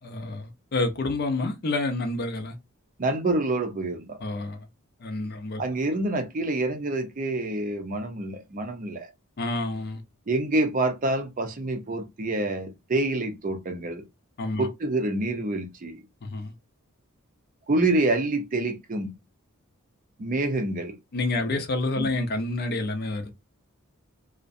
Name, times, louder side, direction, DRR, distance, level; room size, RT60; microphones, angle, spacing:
voice 1, 0.0-2.5 4.2-4.7 5.0-5.6 9.4-10.0 14.4-14.7 16.2-16.5 21.1-23.3, left 2 dB, 45° left, 0.5 m, -28 dB
voice 2, 3.0-4.2 5.6-9.1 10.3-14.0 14.6-16.0 17.7-19.1 20.2-21.0 22.0-22.1, right 2 dB, 40° right, 0.5 m, -27 dB
2.5 x 2.1 x 2.5 m
head